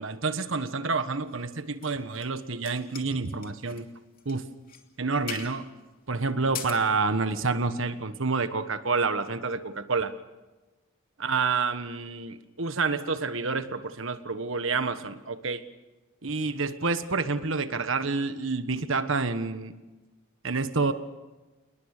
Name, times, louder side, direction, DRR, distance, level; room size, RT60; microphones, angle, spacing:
voice 1, 0.0-3.9 4.2-4.5 5.0-5.7 6.1-10.1 11.2-15.6 16.2-19.7 20.4-20.9, right 4 dB, 70° right, 11 dB, 1.4 m, -28 dB
sound 1, 1.3-2.3 2.6-3.8 4.2-4.4 4.7-4.8 5.3-5.6 6.4-6.7, left 7 dB, 45° left, 2.8 m, -40 dB
28.5 x 20.0 x 6.7 m, 1.2 s
head